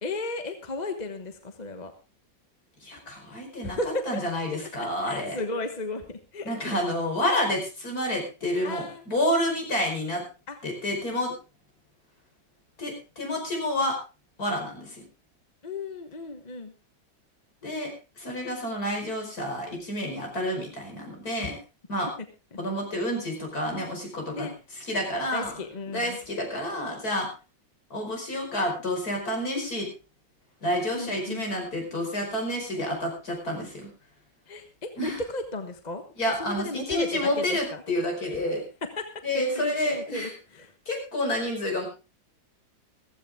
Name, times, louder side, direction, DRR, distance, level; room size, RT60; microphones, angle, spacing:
voice 1, 0.0-1.9 3.6-4.2 4.6-4.7 5.0-6.8 8.6-9.0 10.5-10.6 15.6-16.7 21.4-21.5 24.3-24.5 25.3-26.2 30.9-31.5 34.5-36.0 36.4-37.8 38.8-39.1 39.3-40.7, left 2 dB, 25° left, 7 dB, 1.2 m, -34 dB
voice 2, 2.8-3.8 4.1-5.4 6.4-10.2 10.6-11.3 12.8-14.0 14.4-15.1 17.6-17.9 18.2-21.6 21.9-22.1 22.6-24.5 24.8-25.5 25.9-27.3 27.9-29.9 30.6-33.9 35.0-35.2 36.2-38.6 39.2-40.3 40.9-41.9, left 1 dB, 55° left, 1 dB, 5.6 m, -29 dB
15.0 x 15.0 x 3.5 m, 0.32 s
omnidirectional pair, 1.9 m